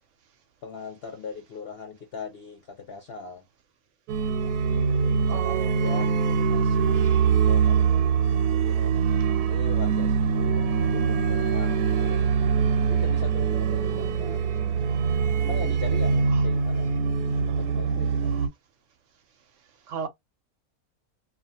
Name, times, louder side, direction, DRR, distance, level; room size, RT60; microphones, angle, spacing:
voice 1, 0.6-3.5 4.4-6.1 6.5-8.0 8.4-9.1 9.4-12.3 12.8-15.0 15.4-18.4, left 5 dB, 60° left, 0.6 m, -40 dB
sound 1, 4.1-18.5, right 6 dB, 85° right, 1.1 m, -23 dB
voice 2, 5.3-6.3 13.5-14.4 19.9-20.1, right 8 dB, 65° right, 0.8 m, -35 dB
2.3 x 2.3 x 2.6 m
omnidirectional pair, 1.6 m